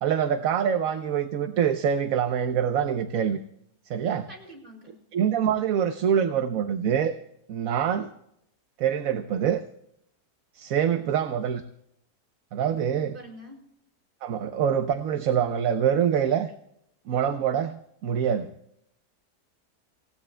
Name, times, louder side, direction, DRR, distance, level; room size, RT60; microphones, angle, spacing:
voice 1, 0.0-3.4 3.9-4.3 5.1-7.1 7.5-8.1 8.8-9.6 10.6-11.6 12.5-13.1 14.2-16.5 17.1-17.8 18.0-18.5, right 8 dB, 65° right, 8 dB, 1.1 m, -25 dB
voice 2, 4.3-5.0 12.9-13.6, equal, 30° right, 0 dB, 4.7 m, -45 dB
28.0 x 16.5 x 2.2 m, 0.76 s
omnidirectional pair, 1.7 m